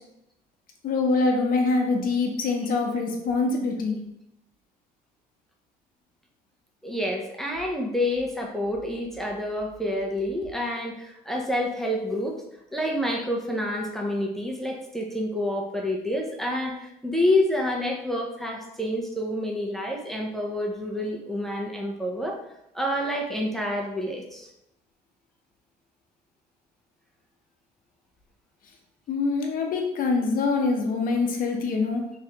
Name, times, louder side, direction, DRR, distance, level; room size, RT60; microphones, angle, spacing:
voice 1, 0.8-4.0 29.1-32.1, left 3 dB, 55° left, 2 dB, 0.8 m, -24 dB
voice 2, 6.8-12.4 12.7-22.4 22.7-24.5, left 1 dB, ahead, 0 dB, 0.6 m, -28 dB
3.4 x 3.1 x 2.9 m, 0.84 s
cardioid pair, 110°, 17 cm